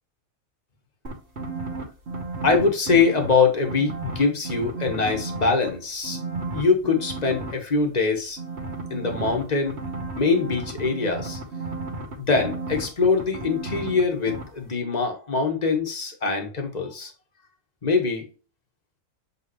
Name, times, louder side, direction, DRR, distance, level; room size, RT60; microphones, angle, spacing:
sound 1, 1.0-3.3 3.6-5.7 6.0-7.5 8.4-14.0 14.3-14.4, right 3 dB, 55° right, 2.0 m, -33 dB
voice 1, 2.4-6.2 6.5-8.4 8.9-9.8 10.2-11.4 12.2-17.1 17.8-18.3, left 4 dB, 30° left, 1.6 m, -23 dB
8.3 x 3.7 x 3.1 m
omnidirectional pair, 1.4 m